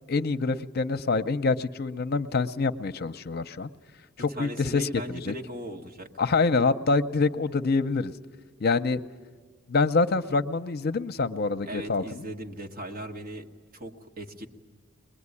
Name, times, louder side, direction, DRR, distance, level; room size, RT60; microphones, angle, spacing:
voice 1, 0.1-3.7 4.2-5.3 6.2-8.1 8.6-9.0 9.7-12.2, left 4 dB, 50° left, 12 dB, 0.7 m, -26 dB
voice 2, 4.2-6.1 11.6-13.5 13.7-14.5, right 1 dB, 45° right, 1 dB, 1.6 m, -38 dB
23.0 x 21.0 x 9.8 m, 1.5 s
head